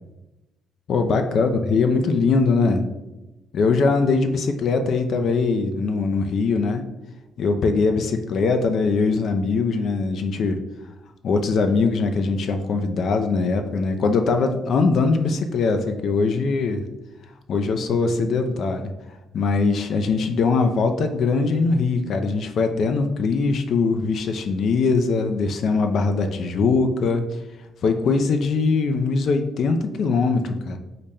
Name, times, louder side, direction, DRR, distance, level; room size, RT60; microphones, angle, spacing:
voice 1, 0.9-2.9 3.5-6.8 7.4-10.6 11.2-16.8 17.5-18.9 19.3-27.2 27.8-30.8, left 4 dB, 65° left, 6 dB, 0.3 m, -21 dB
3.8 x 2.1 x 3.4 m, 1.0 s
cardioid pair, 90°, 0 cm